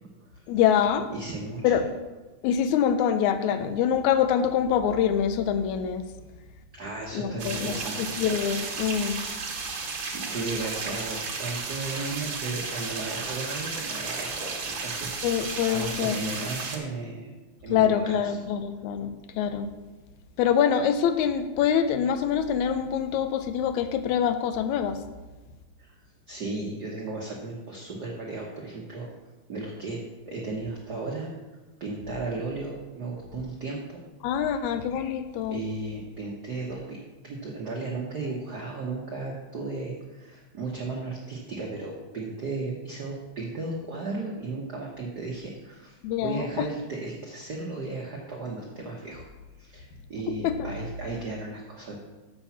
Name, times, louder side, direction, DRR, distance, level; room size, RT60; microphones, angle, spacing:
voice 1, 0.5-1.1 1.6-1.9 2.4-6.0 7.1-9.2 15.2-16.2 17.7-19.7 20.4-25.0 34.2-35.6 46.0-46.7 50.3-50.7, left 8 dB, 80° left, 9 dB, 2.0 m, -25 dB
voice 2, 1.1-1.7 6.7-8.2 10.1-17.3 17.6-18.4 25.8-25.9 26.3-29.1 29.5-31.3 31.8-34.0 35.5-37.0 37.2-49.3 49.6-52.0, right 3 dB, 85° right, -2 dB, 0.8 m, -35 dB
sound 1, 7.4-16.8, right 4 dB, 50° right, 1.7 m, -33 dB
6.9 x 5.6 x 7.1 m, 1.2 s
omnidirectional pair, 3.4 m